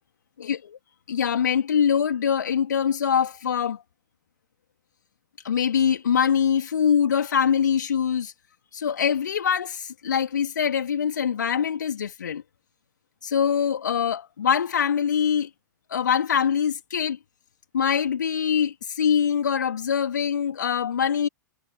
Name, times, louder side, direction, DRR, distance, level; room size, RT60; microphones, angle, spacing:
voice 1, 0.4-0.8 1.1-3.8 5.4-8.3 8.7-12.4 13.2-15.5 15.9-17.2 17.7-21.3, left 7 dB, 65° left, 2.6 m, -23 dB
figure-of-eight pair, 95°, 10 cm